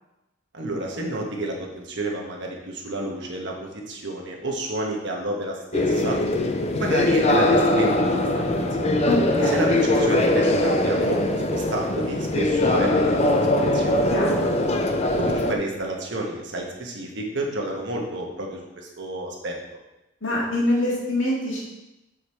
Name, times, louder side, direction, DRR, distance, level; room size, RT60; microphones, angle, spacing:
voice 1, 0.5-6.2 6.8-8.0 8.4-9.0 9.5-14.0 15.2-19.6, right 1 dB, 60° right, 0 dB, 1.2 m, -30 dB
sound 1, 5.7-15.5, left 1 dB, 30° left, 0.5 m, -21 dB
voice 2, 9.1-9.7 14.1-14.5 20.2-21.6, left 1 dB, 70° left, -5 dB, 2.3 m, -25 dB
6.7 x 4.9 x 4.3 m, 0.97 s
head